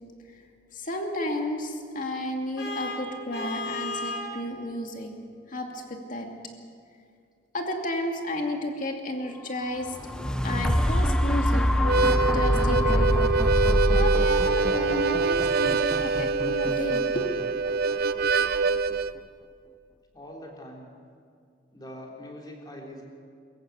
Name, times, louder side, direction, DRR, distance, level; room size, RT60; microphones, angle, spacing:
voice 1, 0.7-5.1 5.5-6.3 7.5-10.0 10.4-11.7 12.1-13.1 13.9-17.6, left 1 dB, 45° left, 2 dB, 2.5 m, -32 dB
Vehicle horn car horn honking, 2.6-4.3, left 2 dB, 60° left, 5.3 m, -33 dB
sound 1, 9.8-17.9 18.5-18.6, equal, 5° left, 0.6 m, -25 dB
Harmonica, 11.7-19.1, right 4 dB, 55° right, 0.6 m, -25 dB
voice 2, 20.1-20.9 21.7-23.0, left 1 dB, 20° left, -1 dB, 3.5 m, -42 dB
24.0 x 14.5 x 8.2 m, 2.2 s
head